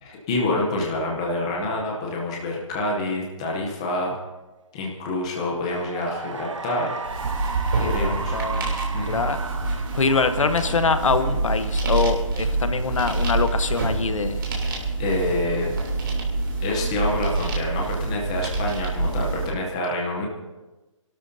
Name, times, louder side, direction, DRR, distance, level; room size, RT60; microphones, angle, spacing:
voice 1, 0.0-4.2 4.7-6.9 7.7-8.4 8.9-9.2 15.0-15.7 16.6-20.3, left 2 dB, 10° left, -1 dB, 0.7 m, -27 dB
Cheering / Applause, 5.5-12.2, right 4 dB, 60° right, 1.1 m, -35 dB
sound 1, 7.0-19.5, right 2 dB, 40° right, 3.0 m, -26 dB
voice 2, 7.8-8.8 9.1-9.4 9.7-14.4, left 4 dB, 70° left, 10 dB, 1.1 m, -24 dB
27.5 x 12.5 x 2.7 m, 1.1 s
hypercardioid pair, 180°, 17 cm